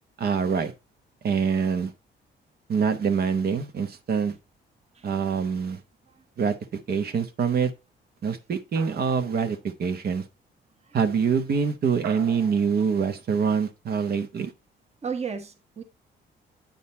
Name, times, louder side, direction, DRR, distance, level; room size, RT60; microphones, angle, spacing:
voice 1, 0.2-0.7 1.2-1.9 2.7-4.3 5.0-5.8 6.4-6.6 6.9-7.7 8.2-10.2 10.9-14.5, right 6 dB, 50° right, 0.9 m, -25 dB
sound 1, 8.7-9.8 12.0-12.9, right 10 dB, 80° right, 0.7 m, -41 dB
voice 2, 15.0-15.8, right 6 dB, 30° right, 1.2 m, -34 dB
8.6 x 3.9 x 4.2 m
cardioid pair, 90°, 20 cm